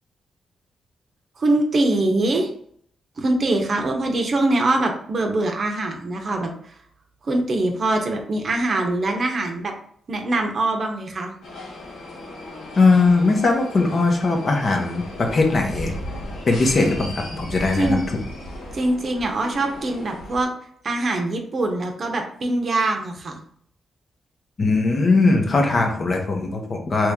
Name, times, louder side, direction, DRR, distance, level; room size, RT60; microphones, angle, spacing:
voice 1, 1.4-2.5 3.2-6.5 7.2-9.7 10.1-11.3 17.7-18.0 18.7-20.5 20.8-23.4, right 2 dB, 50° right, 3 dB, 0.7 m, -23 dB
sound 1, 11.4-20.4, left 1 dB, 85° left, 1.2 m, -36 dB
voice 2, 12.8-15.9 16.5-18.0 24.6-27.1, left 3 dB, 45° left, 3 dB, 0.8 m, -19 dB
3.0 x 2.7 x 3.5 m, 0.63 s
cardioid pair, 90°, 0 cm